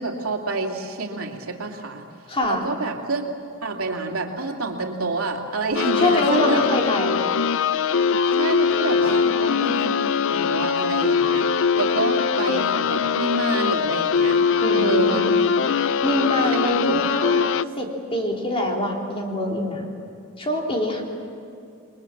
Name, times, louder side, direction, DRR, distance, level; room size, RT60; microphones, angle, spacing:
voice 1, 0.0-2.1 2.4-3.3 3.6-6.6 8.3-14.4 14.7-15.4 16.3-17.0, right 3 dB, 85° right, 2 dB, 2.8 m, -28 dB
voice 2, 2.3-2.6 6.0-7.2 9.0-9.1 14.6-15.3 16.0-17.4 17.8-19.8 20.4-21.0, left 1 dB, 25° left, 0 dB, 3.5 m, -24 dB
sound 1, 5.7-17.6, left 6 dB, 65° left, 0.5 m, -21 dB
29.0 x 22.0 x 7.4 m, 2.6 s
head